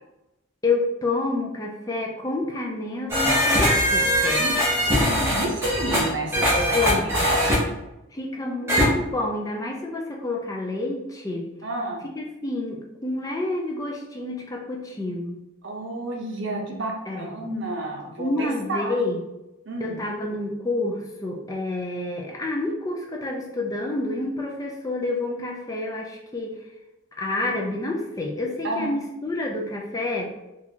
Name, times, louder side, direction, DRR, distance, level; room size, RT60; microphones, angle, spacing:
voice 1, 0.6-4.5 6.7-7.3 8.1-11.5 12.2-15.4 17.1-17.5 18.2-19.2 19.8-26.6 27.2-30.4, left 2 dB, 15° left, 0 dB, 0.3 m, -28 dB
sound 1, 3.1-7.6 8.7-8.8, equal, 10° right, 0.8 m, -21 dB
voice 2, 4.9-7.5 8.4-8.7 11.6-12.0 15.6-19.0 19.7-20.0 28.6-29.0, right 1 dB, 60° right, 0 dB, 0.7 m, -30 dB
4.0 x 2.4 x 2.8 m, 0.97 s
head